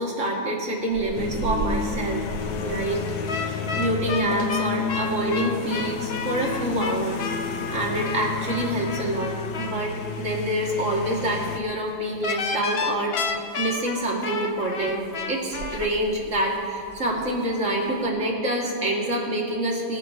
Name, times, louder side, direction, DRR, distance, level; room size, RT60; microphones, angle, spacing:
voice 1, 0.0-2.3 2.6-3.1 3.3-7.2 7.7-15.0 15.3-20.0, right 1 dB, 45° right, -2 dB, 2.2 m, -27 dB
sound 1, 0.9-18.1, right 3 dB, 75° right, 1.8 m, -41 dB
sound 2, 1.1-11.6, left 6 dB, 75° left, 1.4 m, -31 dB
sound 3, 3.3-9.8 12.2-15.9, left 4 dB, 60° left, 0.6 m, -31 dB
27.0 x 10.5 x 2.8 m, 2.3 s
omnidirectional pair, 2.0 m